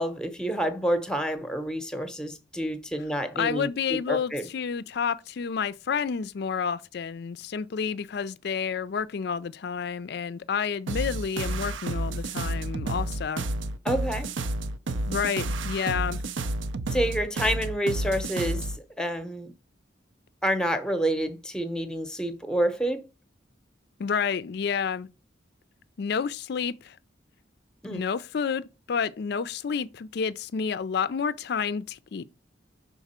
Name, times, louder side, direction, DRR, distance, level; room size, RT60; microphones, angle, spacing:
voice 1, 0.0-4.5 13.8-14.3 16.9-19.5 20.4-23.1 27.8-28.0, right 1 dB, 5° left, 0.7 m, -28 dB
voice 2, 3.4-13.5 15.1-16.2 24.0-25.1 26.0-27.0 27.9-32.2, left 6 dB, 55° left, 0.4 m, -30 dB
sound 1, 10.9-18.8, right 2 dB, 75° right, 0.5 m, -30 dB
5.9 x 3.9 x 4.2 m
head